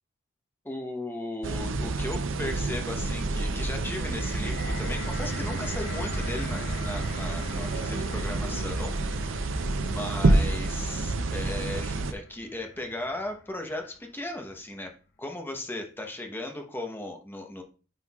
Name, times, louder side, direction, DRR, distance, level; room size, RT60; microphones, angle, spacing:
voice 1, 0.6-9.6 9.8-17.6, left 1 dB, 10° left, 3 dB, 0.9 m, -37 dB
sound 1, 1.4-12.1, right 2 dB, 70° right, 0.6 m, -28 dB
sound 2, 3.6-13.8 14.5-14.6, left 2 dB, 55° left, 0.9 m, -42 dB
9.4 x 4.5 x 2.3 m, 0.37 s
head